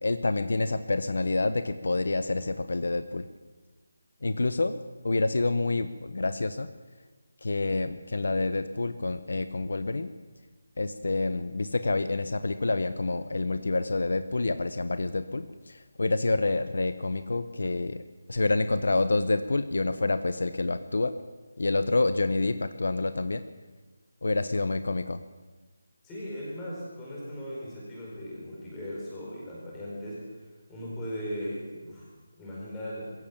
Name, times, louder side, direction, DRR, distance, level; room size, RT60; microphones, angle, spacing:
voice 1, 0.0-3.3 4.2-6.7 7.4-10.1 10.8-18.0 18.3-21.1 21.6-23.4 24.2-25.2, left 3 dB, 60° left, 11 dB, 1.0 m, -28 dB
voice 2, 26.0-30.2 30.7-32.1 32.3-33.1, equal, 5° left, -6 dB, 4.6 m, -38 dB
22.0 x 16.0 x 7.4 m, 1.3 s
figure-of-eight pair, 180°, 0 cm